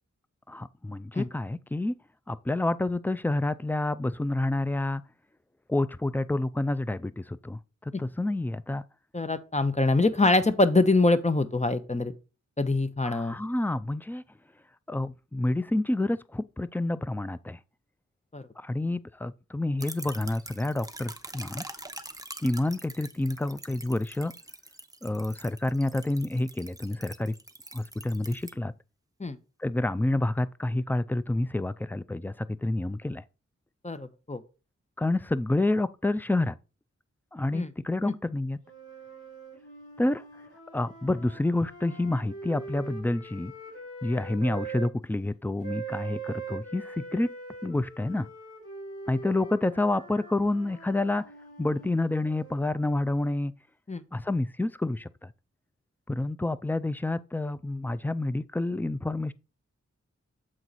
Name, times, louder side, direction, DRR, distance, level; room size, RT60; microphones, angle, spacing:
voice 1, 0.5-1.9 2.3-5.0 5.7-8.8 13.0-14.2 14.9-17.6 18.6-21.6 22.4-24.3 25.0-27.3 27.7-28.7 29.6-33.2 35.0-36.6 37.3-38.6 40.0-40.2 40.7-43.5 44.0-47.3 47.6-48.3 49.1-51.2 51.6-53.5 54.1-55.3 56.1-59.3, left 2 dB, 5° left, 0.4 m, -28 dB
voice 2, 9.1-12.1 12.6-13.4 18.3-18.4 29.2-29.4 33.8-34.4 37.5-37.7 38.1-38.2 53.9-54.0, left 2 dB, 25° left, 0.8 m, -24 dB
sound 1, 19.8-28.5, right 2 dB, 10° right, 0.8 m, -44 dB
sound 2, 38.6-44.9 45.6-52.7, right 4 dB, 55° left, 4.1 m, -42 dB
7.6 x 4.6 x 4.1 m
cardioid pair, 45°, 29 cm